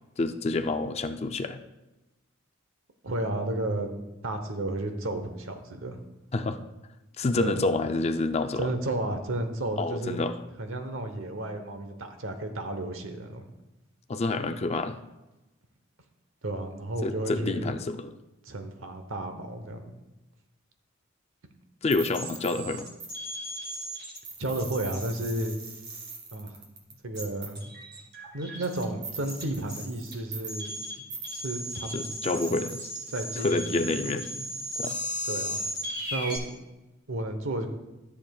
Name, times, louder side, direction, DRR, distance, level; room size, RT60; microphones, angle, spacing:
voice 1, 0.2-1.6 6.3-6.6 7.2-8.7 9.8-10.4 14.1-15.0 17.0-18.1 21.8-22.9 31.9-32.9 33.4-34.3 34.8-35.0, left 3 dB, 30° left, 8 dB, 0.4 m, -28 dB
voice 2, 3.0-3.9 4.2-6.0 7.4-7.6 8.6-10.2 10.6-13.5 16.4-17.7 18.4-19.9 24.4-25.6 26.3-26.6 27.0-27.8 28.3-30.7 31.3-32.1 33.1-34.4 35.2-35.6 36.1-36.4 37.1-37.7, right 1 dB, 75° right, 7 dB, 1.0 m, -32 dB
sound 1, 21.9-36.4, right 1 dB, 55° right, 2.4 m, -37 dB
13.5 x 7.1 x 2.3 m, 1.0 s
head